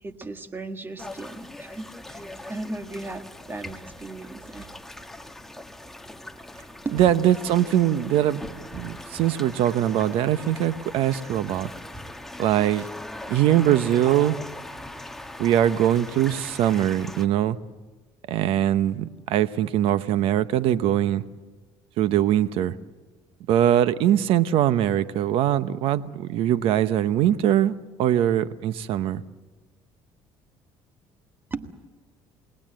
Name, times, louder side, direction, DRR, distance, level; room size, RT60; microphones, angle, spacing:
voice 1, 0.0-4.7 6.8-7.0 31.5-31.7, right 2 dB, 20° right, 1.6 m, -36 dB
sound 1, 1.0-17.3, left 1 dB, 5° left, 1.2 m, -40 dB
voice 2, 6.9-8.5 8.7-11.7 12.4-12.9 13.3-14.4 15.4-17.6 18.3-21.2 22.0-22.7 23.5-27.7 28.0-29.2, right 11 dB, 70° right, 0.9 m, -22 dB
29.0 x 19.0 x 7.7 m
cardioid pair, 115°, 10 cm